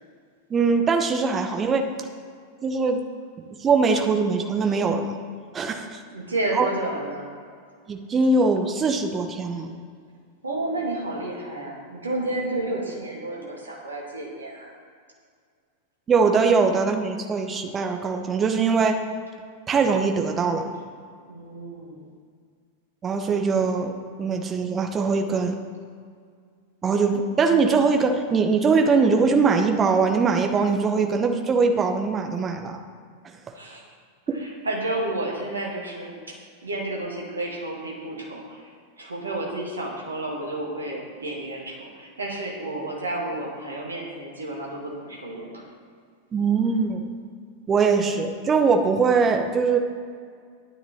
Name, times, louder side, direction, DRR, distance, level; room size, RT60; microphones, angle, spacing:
voice 1, 0.5-1.9 2.6-3.0 3.4-5.1 5.5-6.0 6.5-6.7 7.9-9.7 16.1-19.0 19.7-20.7 23.0-23.9 24.2-25.6 26.8-32.8 34.3-34.4 46.3-47.0 47.7-49.8, right 4 dB, 20° right, 5 dB, 1.0 m, -22 dB
voice 2, 6.1-7.3 10.4-14.7 21.3-22.1 33.5-33.8 34.4-36.1 36.6-38.6 39.0-45.6, right 2 dB, 75° right, -2 dB, 2.1 m, -31 dB
9.8 x 9.3 x 4.4 m, 2.1 s
figure-of-eight pair, 90°, 0 cm